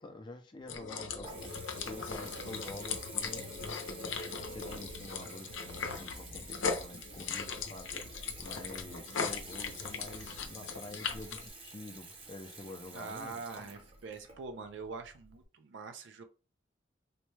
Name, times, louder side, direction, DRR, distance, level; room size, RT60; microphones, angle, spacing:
voice 1, 0.0-3.4 4.5-13.4, left 2 dB, 25° left, 0.4 m, -48 dB
Water tap faucet / Bathtub (filling or washing) / Trickle dribble, 0.6-15.4, right 3 dB, 30° right, 0.7 m, -51 dB
sound 1, 0.7-11.5, left 5 dB, 85° left, 0.6 m, -39 dB
voice 2, 12.9-16.2, right 4 dB, 70° right, 0.4 m, -44 dB
4.1 x 2.2 x 3.1 m
head